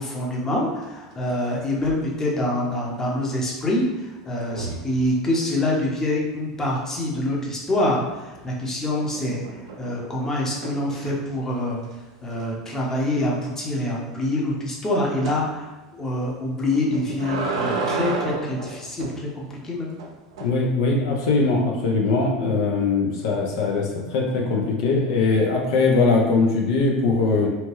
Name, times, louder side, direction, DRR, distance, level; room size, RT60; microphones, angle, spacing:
voice 1, 0.0-9.4 9.8-11.8 12.2-15.7 16.0-19.9, left 1 dB, 15° left, -2 dB, 0.8 m, -25 dB
sound 1, 0.8-1.4 1.7-2.1 4.4-5.0 8.1-8.6 9.0-11.4 11.8-11.9 12.3-12.4 12.8-12.9 15.2-15.4 16.7-19.2 20.0-20.5, right 4 dB, 85° right, 0.5 m, -31 dB
voice 2, 20.4-27.5, left 3 dB, 75° left, -1 dB, 0.6 m, -21 dB
2.8 x 2.2 x 3.1 m, 1.1 s
supercardioid pair, 105°, 3 cm